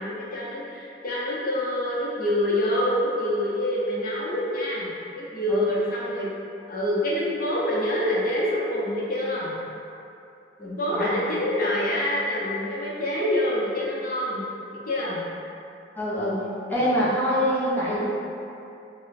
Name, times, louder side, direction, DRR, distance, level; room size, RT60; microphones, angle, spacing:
voice 1, 0.0-6.3 6.7-9.6 10.6-14.4 14.9-15.2 16.7-16.9, left 1 dB, 50° left, -6 dB, 0.7 m, -26 dB
voice 2, 10.6-11.1 16.0-16.4 16.7-18.0, equal, 10° left, -9 dB, 0.8 m, -25 dB
3.1 x 2.2 x 4.0 m, 2.7 s
head